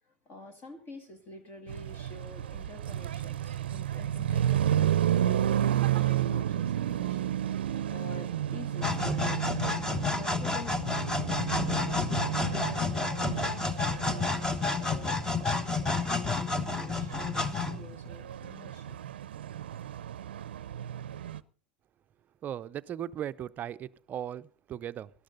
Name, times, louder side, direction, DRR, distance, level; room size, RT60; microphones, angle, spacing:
voice 1, 0.0-9.4 9.9-11.9 12.5-19.0, left 2 dB, 35° left, 2.2 m, -48 dB
sound 1, 1.7-21.4, right 11 dB, 70° right, 0.6 m, -32 dB
sound 2, 8.8-18.1, left 3 dB, 10° left, 1.1 m, -30 dB
voice 2, 22.4-25.1, right 10 dB, 30° right, 0.6 m, -37 dB
18.0 x 12.5 x 3.9 m
hypercardioid pair, 95°, 6 cm